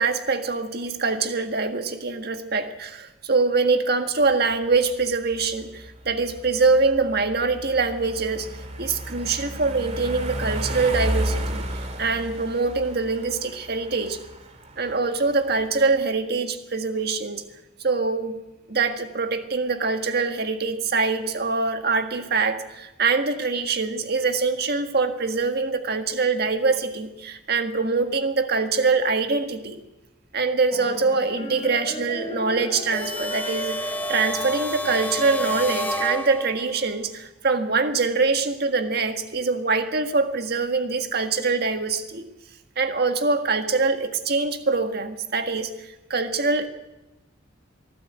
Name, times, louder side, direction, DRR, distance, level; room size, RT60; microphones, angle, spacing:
voice 1, 0.0-11.6 12.0-14.2 14.8-17.4 17.8-18.4 18.7-29.8 30.3-42.3 42.7-46.7, right 4 dB, 55° right, 7 dB, 1.6 m, -24 dB
sound 1, 4.3-16.0, right 1 dB, 35° right, 2.1 m, -33 dB
sound 2, 30.7-35.8, left 2 dB, 30° left, 5.5 m, -37 dB
sound 3, 32.9-36.8, equal, 10° left, 1.0 m, -29 dB
23.5 x 13.5 x 8.1 m, 1.0 s
head